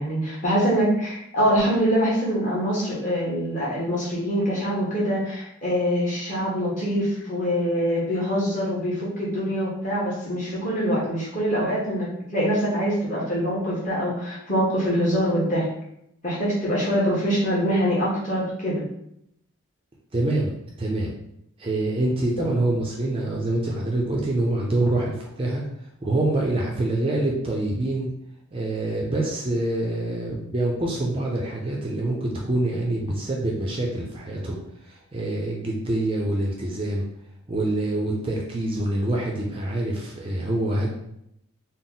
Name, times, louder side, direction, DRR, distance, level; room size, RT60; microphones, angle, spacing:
voice 1, 0.0-15.7 16.2-18.8, equal, 35° left, -7 dB, 1.3 m, -24 dB
voice 2, 20.1-20.5 20.8-21.1 21.6-25.6 26.0-28.1 28.5-34.6 34.8-37.1 37.5-40.9, right 2 dB, 25° right, -2 dB, 0.4 m, -25 dB
4.0 x 2.0 x 3.7 m, 0.77 s
head